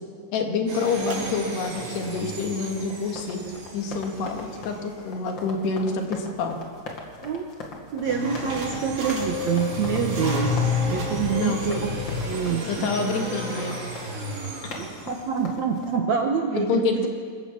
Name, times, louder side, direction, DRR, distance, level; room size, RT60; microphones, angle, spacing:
voice 1, 0.3-3.4 3.7-6.6 11.3-11.6 12.6-14.1 16.6-17.1, left 4 dB, 90° left, 3 dB, 4.0 m, -27 dB
sound 1, 0.7-5.2 8.0-15.3, right 2 dB, 85° right, 7.2 m, -34 dB
sound 2, 1.5-16.0, left 2 dB, 35° left, 2.3 m, -42 dB
voice 2, 7.9-11.9 12.2-12.9 14.8-17.1, right 6 dB, 70° right, 3 dB, 1.8 m, -26 dB
sound 3, 8.8-13.5, left 6 dB, 70° left, 3.0 m, -30 dB
27.0 x 15.0 x 7.2 m, 2.1 s
omnidirectional pair, 4.6 m